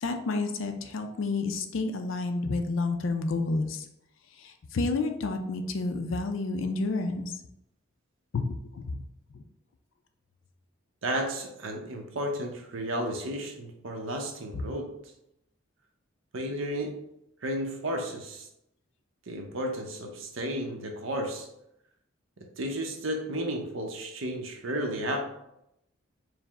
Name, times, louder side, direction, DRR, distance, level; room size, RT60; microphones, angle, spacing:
voice 1, 0.0-3.9 4.4-7.3 8.3-9.0 9.3-9.4 14.5-14.6, left 3 dB, 70° left, 6 dB, 0.4 m, -30 dB
voice 2, 11.0-15.0 16.3-17.0 17.4-18.5 19.3-21.5 22.6-25.2, right 1 dB, 70° right, 3 dB, 0.7 m, -33 dB
4.7 x 2.1 x 3.5 m, 0.81 s
head